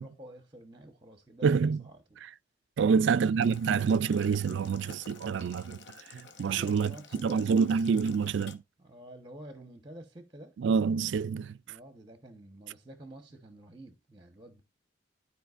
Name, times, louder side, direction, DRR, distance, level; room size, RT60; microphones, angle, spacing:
voice 1, 0.0-2.2 2.8-3.2 6.4-8.0 8.8-10.6 11.7-14.6, right 1 dB, 25° right, 1.1 m, -49 dB
voice 2, 1.4-1.8 2.2-2.3 2.8-5.8 6.1-8.6 10.6-11.6, right 6 dB, 65° right, 0.3 m, -27 dB
Boiling, 3.4-8.5, left 5 dB, 60° left, 1.2 m, -51 dB
12.5 x 4.9 x 2.5 m
head